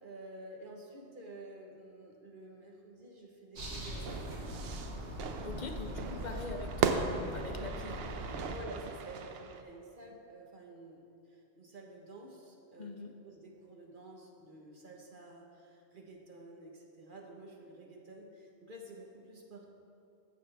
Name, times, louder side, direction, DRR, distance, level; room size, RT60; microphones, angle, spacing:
voice 1, 0.0-4.6 5.5-6.4 8.5-11.0 11.3-12.9 13.2-19.7, right 1 dB, 50° right, 0 dB, 1.3 m, -51 dB
sound 1, 3.5-8.6, equal, 80° right, 1.5 m, -41 dB
Fire / Fireworks, 4.1-9.6, right 6 dB, 65° right, 0.8 m, -37 dB
voice 2, 5.4-8.0 12.8-13.1, left 3 dB, 45° left, 4 dB, 0.8 m, -43 dB
14.0 x 7.6 x 3.4 m, 2.6 s
omnidirectional pair, 1.2 m